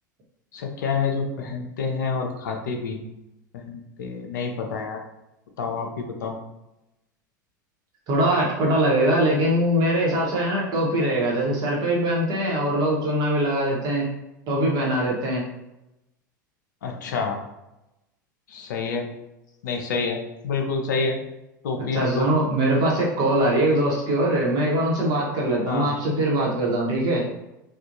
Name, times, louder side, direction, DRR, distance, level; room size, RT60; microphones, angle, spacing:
voice 1, 0.5-3.1 3.5-5.0 5.6-6.4 16.8-17.4 18.5-19.1 19.6-21.2 21.6-22.3 25.6-25.9, left 4 dB, 65° left, 3 dB, 0.5 m, -28 dB
voice 2, 8.1-14.1 14.5-15.4 21.8-27.2, right 1 dB, 40° right, -3 dB, 1.0 m, -22 dB
3.4 x 2.3 x 2.6 m, 0.93 s
figure-of-eight pair, 80°, 11 cm